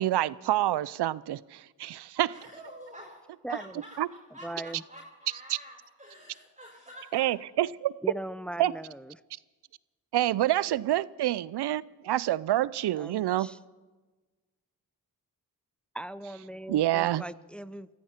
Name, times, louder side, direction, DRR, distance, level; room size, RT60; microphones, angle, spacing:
voice 1, 0.0-2.3 4.0-4.1 5.5-5.6 7.1-7.9 8.6-8.7 10.1-13.5 16.7-17.2, right 13 dB, 75° right, 0.6 m, -27 dB
voice 2, 2.3-3.1 3.5-7.3, equal, 15° right, 5.3 m, -48 dB
voice 3, 3.4-3.8 4.4-4.8 8.0-9.2 13.0-13.6 15.9-17.9, right 1 dB, 5° left, 0.6 m, -39 dB
23.0 x 14.5 x 4.4 m
cardioid pair, 45°, 40 cm